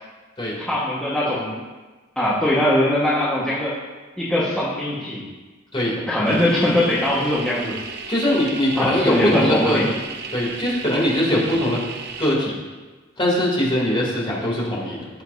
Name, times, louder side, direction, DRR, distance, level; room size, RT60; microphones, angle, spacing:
voice 1, 0.7-1.6 2.1-3.8 4.2-5.3 6.1-7.8 8.8-9.8, left 1 dB, 5° left, -10 dB, 1.5 m, -21 dB
sound 1, 6.3-12.3, right 5 dB, 55° right, 0.9 m, -35 dB
voice 2, 8.1-9.8 10.3-11.8 12.2-12.5 13.2-15.2, left 1 dB, 25° left, -5 dB, 3.0 m, -21 dB
16.0 x 7.2 x 2.8 m, 1.3 s
head